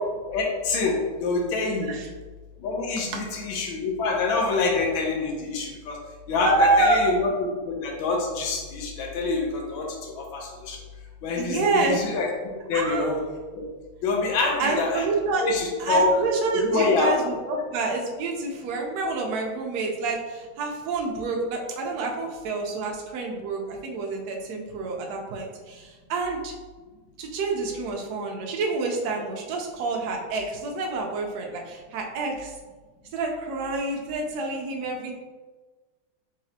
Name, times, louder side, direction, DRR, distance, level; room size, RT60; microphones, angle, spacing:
voice 1, 0.3-1.9 2.6-6.0 6.3-7.3 7.7-10.8 11.2-12.3 12.7-13.2 13.5-13.7 14.0-15.0 15.4-16.1 16.5-17.2 17.5-17.6, left 3 dB, 75° left, 1 dB, 1.4 m, -26 dB
voice 2, 6.4-7.1 11.4-12.0 12.7-13.1 14.6-15.4 15.8-26.5 27.2-32.5 33.1-35.1, right 3 dB, 75° right, 0 dB, 0.9 m, -27 dB
3.8 x 3.2 x 2.7 m, 1.3 s
omnidirectional pair, 2.3 m